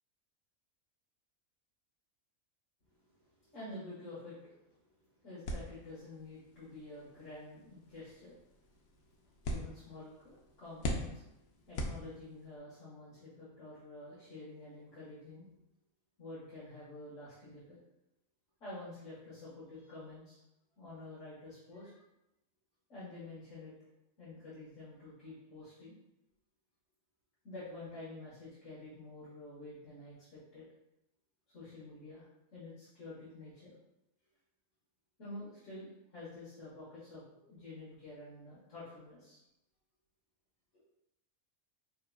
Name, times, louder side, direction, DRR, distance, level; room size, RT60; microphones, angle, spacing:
voice 1, 3.0-4.6 5.2-8.8 9.4-11.2 11.7-15.5 16.2-17.8 18.6-20.4 20.8-22.0 22.9-23.7 24.2-25.9 27.4-30.6 31.5-33.7 35.2-39.4, left 2 dB, 60° left, -10 dB, 1.7 m, -49 dB
sound 1, 5.4-12.6, left 1 dB, 90° left, 1.1 m, -43 dB
4.6 x 3.6 x 2.3 m, 0.89 s
omnidirectional pair, 1.5 m